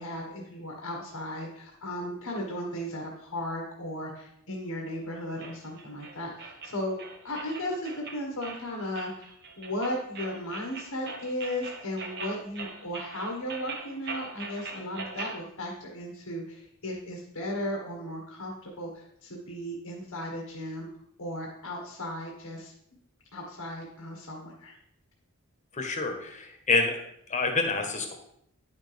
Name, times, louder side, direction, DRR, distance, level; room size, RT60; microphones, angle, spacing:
voice 1, 0.0-7.0 7.2-20.9 21.2-22.7 23.3-24.7, left 1 dB, 75° left, -1 dB, 1.5 m, -36 dB
sound 1, 5.4-15.4, right 4 dB, 50° right, 1.2 m, -41 dB
voice 2, 25.7-27.0 27.3-28.2, left 3 dB, 35° left, 4 dB, 1.3 m, -27 dB
10.0 x 6.4 x 3.5 m, 0.73 s
head